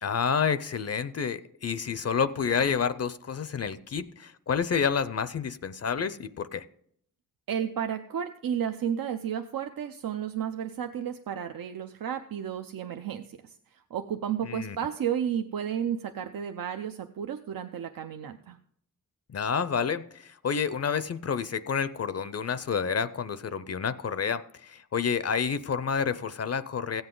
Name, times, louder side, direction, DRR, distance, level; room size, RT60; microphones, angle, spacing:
voice 1, 0.0-6.6 14.5-14.8 19.3-27.0, left 6 dB, 50° left, 0.4 m, -29 dB
voice 2, 7.5-18.6, right 9 dB, 85° right, 0.6 m, -32 dB
15.5 x 7.9 x 3.7 m
wide cardioid pair, 120°, 33 cm